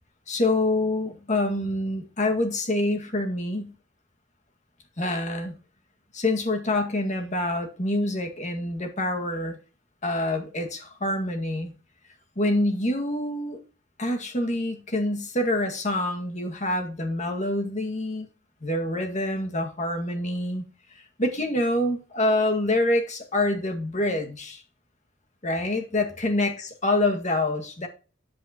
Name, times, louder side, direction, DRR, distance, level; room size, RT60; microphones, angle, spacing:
voice 1, 0.3-3.7 5.0-5.5 6.1-9.6 10.0-11.7 12.4-13.6 14.0-18.3 18.6-20.6 21.2-24.6 25.4-27.9, left 1 dB, 40° left, 2.0 m, -26 dB
9.8 x 8.3 x 2.9 m
head